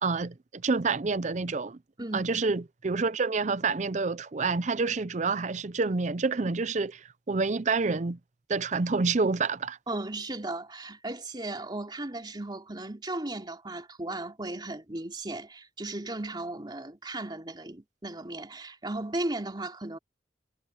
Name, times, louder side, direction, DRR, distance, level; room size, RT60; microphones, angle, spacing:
voice 1, 0.0-1.8 2.1-8.2 8.5-9.8, right 4 dB, 40° right, 0.6 m, -28 dB
voice 2, 2.0-2.3 9.9-20.0, right 2 dB, 25° right, 3.0 m, -36 dB
head